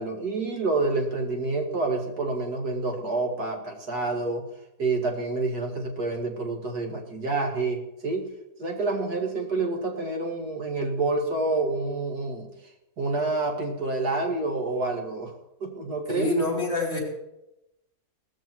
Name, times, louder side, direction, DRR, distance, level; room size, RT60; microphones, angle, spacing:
voice 1, 0.0-4.4 4.8-8.3 8.6-12.5 13.0-15.3 15.6-16.3, right 3 dB, 70° right, 2 dB, 2.6 m, -28 dB
voice 2, 16.1-17.0, left 2 dB, 40° left, -1 dB, 4.8 m, -26 dB
18.0 x 13.5 x 4.6 m, 0.88 s
omnidirectional pair, 1.7 m